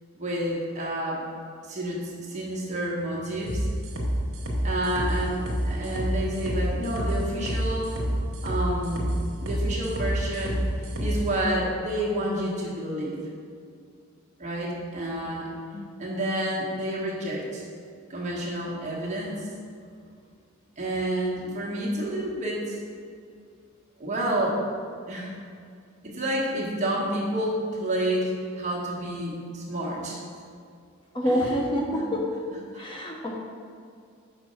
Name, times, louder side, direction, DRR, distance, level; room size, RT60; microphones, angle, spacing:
voice 1, 0.1-1.2 1.6-3.7 4.6-7.9 8.4-9.1 9.4-10.6 11.0-13.1 14.4-15.5 16.0-17.6 18.1-19.5 20.8-22.8 24.0-24.6 25.1-25.3 26.0-30.2 31.2-31.6 32.7-32.8, right 1 dB, 35° right, -5 dB, 1.3 m, -29 dB
sound 1, 3.5-11.2, equal, 75° right, 1.1 m, -28 dB
voice 2, 31.1-32.4 32.8-33.4, equal, 25° left, -1 dB, 0.6 m, -27 dB
6.1 x 4.1 x 5.5 m, 2.3 s
head